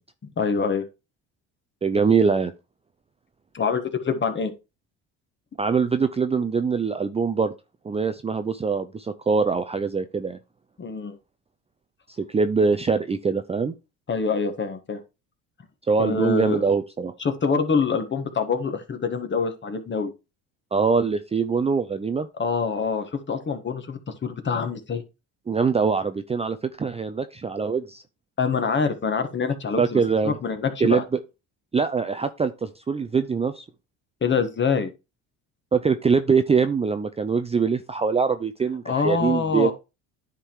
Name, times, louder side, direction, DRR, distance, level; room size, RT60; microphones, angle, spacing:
voice 1, 0.4-0.8 3.5-4.5 10.8-11.1 14.1-15.0 16.0-16.7 17.2-20.1 22.4-25.0 28.4-31.0 34.2-34.9 38.8-39.7, left 5 dB, 30° left, 7 dB, 1.5 m, -25 dB
voice 2, 1.8-2.5 5.6-7.5 7.8-10.4 12.2-13.7 15.9-17.1 20.7-22.3 25.5-28.0 29.8-30.4 30.8-31.2 31.7-33.7 35.7-39.7, right 5 dB, 20° right, 10 dB, 0.5 m, -23 dB
10.0 x 3.8 x 4.5 m, 0.27 s
supercardioid pair, 90°, 35 cm